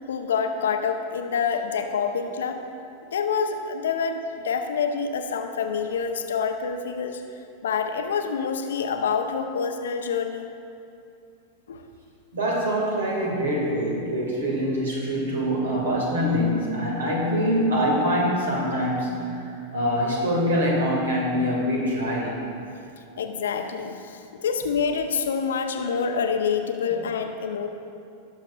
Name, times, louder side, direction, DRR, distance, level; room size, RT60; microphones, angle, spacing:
voice 1, 0.1-2.6 3.1-4.2 4.4-7.2 7.6-10.5 11.7-11.8 23.2-24.0 24.4-27.7, left 6 dB, 65° left, 6 dB, 0.7 m, -26 dB
voice 2, 12.3-19.3 19.7-22.4, equal, 70° right, -2 dB, 2.1 m, -24 dB
18.5 x 6.5 x 2.4 m, 2.6 s
figure-of-eight pair, 90°, 0 cm